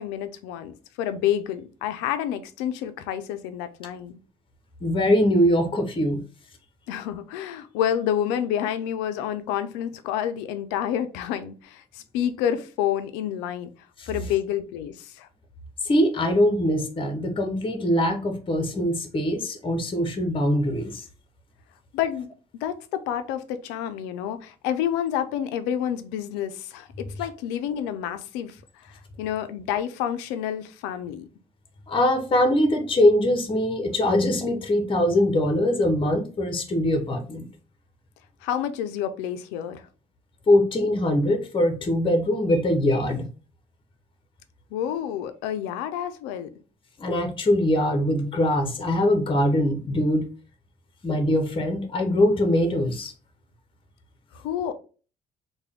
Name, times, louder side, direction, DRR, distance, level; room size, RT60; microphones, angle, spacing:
voice 1, 0.0-4.2 6.9-13.7 14.1-15.3 21.9-22.3 22.6-28.6 28.8-31.3 38.4-39.9 44.7-46.5 54.3-54.7, left 10 dB, 80° left, 0.4 m, -29 dB
voice 2, 4.8-6.2 14.0-14.1 15.8-21.0 31.9-37.5 40.5-43.3 47.0-50.3 51.0-53.1, left 1 dB, 30° left, 0.8 m, -22 dB
3.4 x 2.2 x 3.4 m
hypercardioid pair, 60°, 18 cm